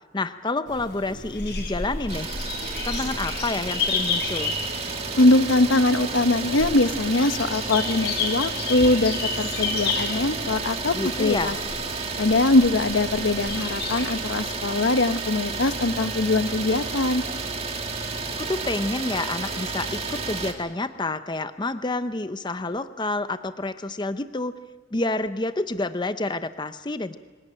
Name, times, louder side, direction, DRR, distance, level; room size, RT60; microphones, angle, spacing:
voice 1, 0.1-2.3 2.8-4.6 10.9-11.6 18.4-24.5 24.9-27.2, left 2 dB, 25° left, 11 dB, 0.7 m, -28 dB
sound 1, 0.7-14.5, left 4 dB, 60° left, 5.5 m, -32 dB
Idling, 2.1-20.5, right 4 dB, 30° right, 2.3 m, -31 dB
voice 2, 5.2-11.5 12.2-17.2, left 2 dB, 85° left, 11 dB, 1.0 m, -22 dB
25.0 x 17.0 x 9.0 m, 1.5 s
head